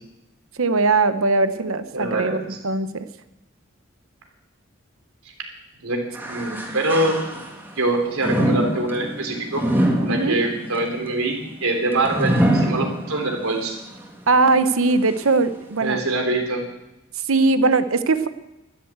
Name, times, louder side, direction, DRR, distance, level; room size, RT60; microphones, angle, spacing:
voice 1, 0.6-3.1 10.1-10.4 14.3-16.0 17.3-18.3, right 3 dB, 75° right, 11 dB, 0.9 m, -20 dB
voice 2, 1.9-2.6 5.8-6.0 6.3-7.2 7.8-9.7 10.0-13.8 15.8-16.6, right 2 dB, 90° right, 3 dB, 3.6 m, -24 dB
sound 1, 6.1-7.7 8.2-13.5 13.9-14.0 14.9-15.0, right 1 dB, 10° right, 1.9 m, -24 dB
12.5 x 11.5 x 8.0 m, 0.94 s
head